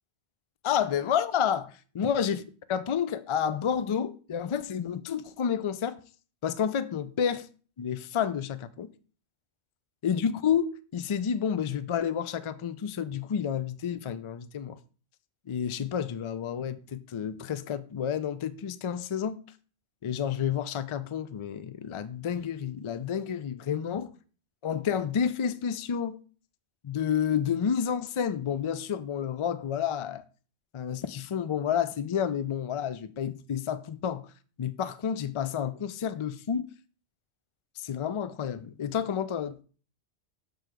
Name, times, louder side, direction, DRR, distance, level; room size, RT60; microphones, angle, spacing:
voice 1, 0.6-2.4 2.7-6.0 6.4-7.5 7.8-8.9 10.0-14.8 15.5-19.4 20.0-24.1 24.6-26.2 26.8-30.2 30.7-34.3 34.6-36.7 37.8-39.6, left 8 dB, 50° left, 0.3 m, -30 dB
6.8 x 3.3 x 6.0 m
omnidirectional pair, 1.1 m